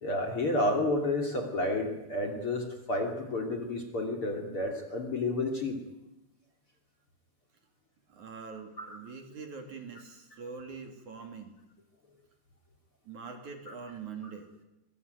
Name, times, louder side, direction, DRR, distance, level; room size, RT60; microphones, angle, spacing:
voice 1, 0.0-5.8 8.8-9.0 13.7-13.8, left 2 dB, 35° left, 3 dB, 3.3 m, -31 dB
voice 2, 8.1-11.5 13.1-14.5, right 5 dB, 50° right, 5 dB, 3.8 m, -43 dB
24.5 x 22.0 x 9.7 m, 0.95 s
omnidirectional pair, 4.8 m